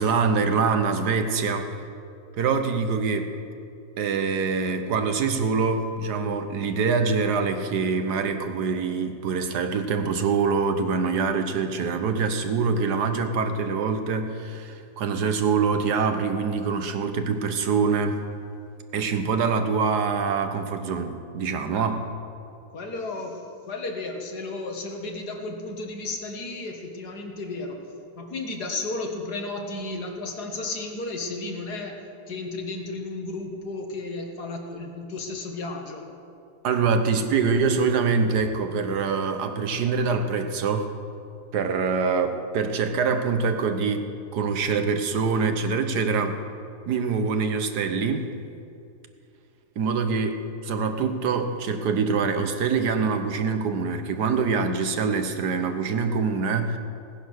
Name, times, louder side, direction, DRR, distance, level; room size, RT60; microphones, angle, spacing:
voice 1, 0.0-1.7 2.4-3.3 4.0-18.2 18.9-22.0 36.6-40.9 41.5-46.4 46.9-48.3 49.8-56.8, right 5 dB, 80° right, 7 dB, 1.6 m, -24 dB
voice 2, 22.7-27.9 28.2-36.1, left 2 dB, 75° left, 3 dB, 2.2 m, -33 dB
17.0 x 10.0 x 6.4 m, 2.5 s
omnidirectional pair, 1.7 m